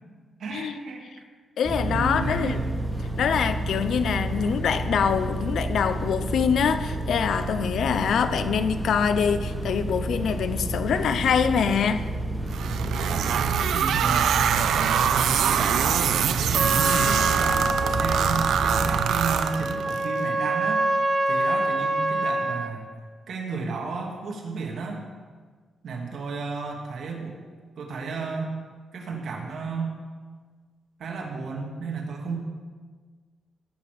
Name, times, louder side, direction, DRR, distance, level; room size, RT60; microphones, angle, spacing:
voice 1, 0.4-1.1 1.9-2.6 13.1-13.4 13.7-14.5 15.0-20.9 21.3-22.9 23.3-25.1 25.8-27.4 27.8-28.5 28.9-29.9 31.0-32.4, right 4 dB, 70° right, 0 dB, 2.9 m, -33 dB
voice 2, 1.6-2.6 3.2-12.1, left 7 dB, 75° left, 10 dB, 0.7 m, -24 dB
sound 1, 1.6-19.0, right 1 dB, 15° right, 2.7 m, -30 dB
sound 2, 12.5-20.0, right 8 dB, 90° right, 0.7 m, -24 dB
Trumpet, 16.5-22.7, right 2 dB, 35° right, 1.3 m, -26 dB
17.5 x 7.3 x 6.7 m, 1.5 s
cardioid pair, 110°, 0 cm